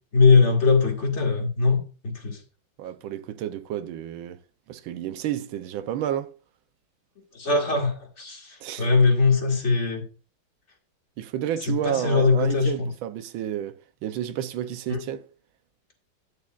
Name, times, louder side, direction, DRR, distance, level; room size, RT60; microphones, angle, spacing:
voice 1, 0.1-2.4 7.3-10.1 11.7-12.9 14.9-15.0, left 4 dB, 35° left, 2.1 m, -21 dB
voice 2, 2.8-4.4 4.7-6.3 8.6-8.9 11.2-15.3, right 11 dB, 90° right, 1.5 m, -31 dB
11.0 x 9.6 x 2.4 m
omnidirectional pair, 2.1 m